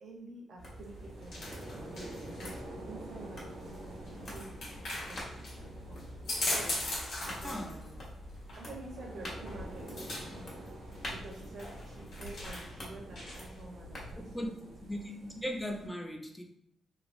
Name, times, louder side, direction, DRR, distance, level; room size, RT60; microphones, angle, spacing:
voice 1, 0.0-1.4 1.7-2.5 2.9-4.5 4.9-6.2 7.1-8.0 8.5-9.9 10.5-10.7 11.1-14.7, right 2 dB, 60° right, -1 dB, 0.9 m, -49 dB
sound 1, 0.6-14.3, equal, 40° left, 1.2 m, -48 dB
sound 2, 0.7-13.6, left 1 dB, 70° left, 1.4 m, -41 dB
sound 3, 0.7-15.9, right 1 dB, 85° right, 1.1 m, -48 dB
voice 2, 7.4-7.8 14.3-14.5 14.8-16.4, equal, 5° left, 2 dB, 0.5 m, -38 dB
3.2 x 2.9 x 2.6 m, 0.75 s
wide cardioid pair, 145°, 0 cm